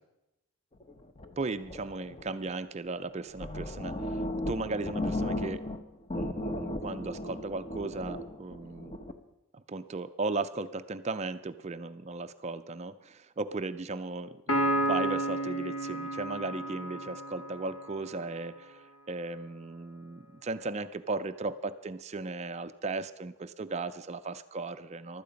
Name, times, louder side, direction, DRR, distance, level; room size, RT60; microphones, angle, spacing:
sound 1, 0.8-2.5 3.0-3.1 3.3-5.8 6.1-9.1, left 1 dB, 25° left, 0.8 m, -36 dB
voice 1, 1.4-5.6 6.2-8.9 9.5-25.2, right 3 dB, 30° right, 11 dB, 0.4 m, -36 dB
Piano, 14.5-18.1, right 1 dB, 65° left, 1.5 m, -31 dB
15.5 x 12.0 x 5.1 m, 0.93 s
head